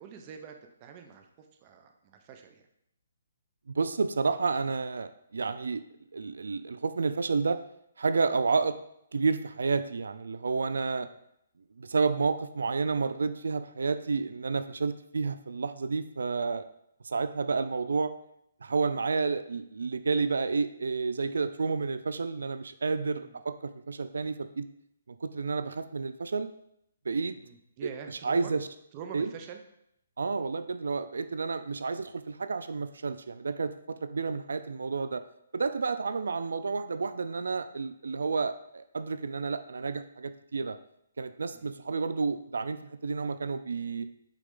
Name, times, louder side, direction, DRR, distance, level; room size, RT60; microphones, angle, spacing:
voice 1, 0.0-2.6 11.0-11.2 23.1-23.4 27.3-28.5 28.9-29.6 41.5-41.8, right 7 dB, 25° right, 5 dB, 0.7 m, -46 dB
voice 2, 3.7-5.8 6.1-7.6 8.0-8.8 9.1-11.1 11.8-16.7 17.0-18.1 18.6-24.6 25.1-26.5 27.1-27.3 28.2-28.7 29.1-29.3 30.2-35.2 35.5-40.8 41.2-44.1, right 4 dB, 85° right, 12 dB, 0.4 m, -30 dB
8.2 x 3.9 x 3.8 m, 0.76 s
hypercardioid pair, 165°, 0 cm